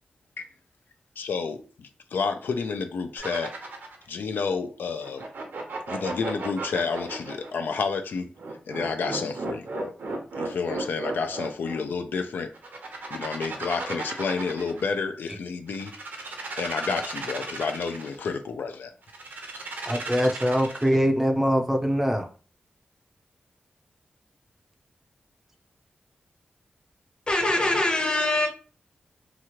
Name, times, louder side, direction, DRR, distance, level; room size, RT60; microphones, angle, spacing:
voice 1, 1.2-3.5 4.1-5.3 5.9-8.3 8.7-9.9 10.4-12.5 13.1-15.9 16.6-18.9, left 5 dB, 85° left, 0.4 m, -30 dB
sound 1, 3.2-4.0 5.0-7.5 8.4-11.8 12.5-14.9 15.7-18.2 19.1-21.0, right 3 dB, 80° right, 0.8 m, -35 dB
voice 2, 19.9-22.3, equal, 10° right, 0.5 m, -23 dB
voice 3, 27.3-28.5, left 2 dB, 30° left, 0.9 m, -23 dB
2.9 x 2.4 x 2.9 m
wide cardioid pair, 100°, 3 cm